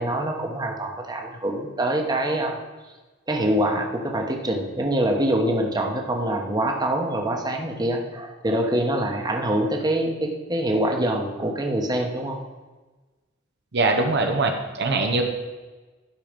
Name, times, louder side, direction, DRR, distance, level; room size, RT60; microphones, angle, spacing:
voice 1, 0.0-2.6 3.3-12.4, right 1 dB, 20° right, 1 dB, 1.1 m, -25 dB
voice 2, 13.7-15.2, right 3 dB, 55° right, 4 dB, 0.9 m, -22 dB
12.0 x 5.8 x 5.2 m, 1.2 s
head